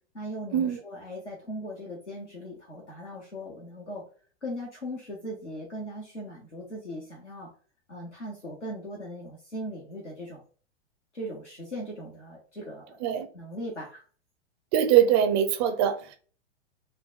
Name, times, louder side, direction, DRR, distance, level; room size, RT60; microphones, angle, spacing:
voice 1, 0.1-4.0 4.4-7.5 7.9-10.4 11.1-13.0 13.3-14.0, equal, 85° left, 1.2 m, -39 dB
voice 2, 14.7-16.2, right 10 dB, 25° right, 0.4 m, -22 dB
3.8 x 2.3 x 3.8 m
figure-of-eight pair, 100°, 35 cm